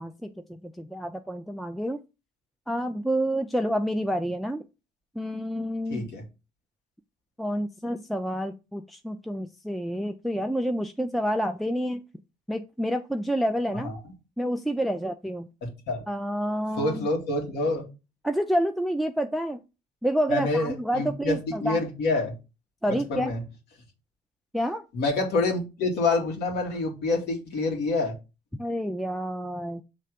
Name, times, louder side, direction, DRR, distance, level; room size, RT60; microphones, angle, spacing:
voice 1, 0.0-2.0 2.7-4.6 5.2-6.0 7.4-12.0 12.5-13.9 14.4-15.5 16.1-17.1 18.2-19.6 20.0-21.8 22.8-23.3 24.5-24.8 28.6-29.8, equal, ahead, 8 dB, 0.4 m, -28 dB
voice 2, 5.9-6.2 13.8-13.9 15.6-16.0 16.8-17.8 20.3-22.4 22.9-23.4 24.9-28.1, left 3 dB, 80° left, 2 dB, 2.2 m, -27 dB
6.6 x 3.3 x 5.1 m, 0.28 s
cardioid pair, 110°, 17 cm